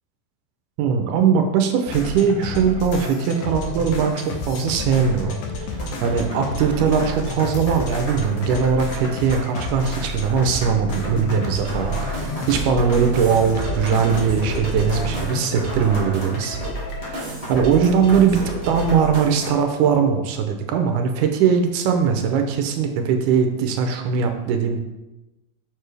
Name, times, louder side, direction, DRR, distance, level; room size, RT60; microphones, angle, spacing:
voice 1, 0.8-16.6 17.1-24.8, right 6 dB, 90° right, 5 dB, 2.2 m, -20 dB
sound 1, 1.9-17.3, left 2 dB, 70° left, 1.9 m, -31 dB
sound 2, 5.7-19.5, equal, 25° left, 0.8 m, -36 dB
sound 3, 11.6-19.6, right 3 dB, 45° right, 2.3 m, -31 dB
6.7 x 6.6 x 3.3 m, 1.0 s
omnidirectional pair, 3.5 m